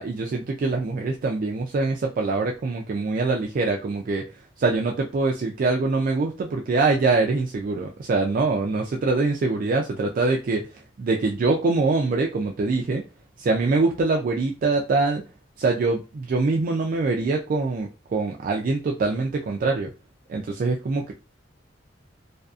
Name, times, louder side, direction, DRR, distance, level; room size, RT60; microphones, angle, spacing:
voice 1, 0.0-4.2 4.6-10.6 11.0-13.0 13.4-15.2 15.6-19.9 20.3-21.1, right 3 dB, 45° right, 1 dB, 0.3 m, -24 dB
2.5 x 2.4 x 2.3 m, 0.30 s
head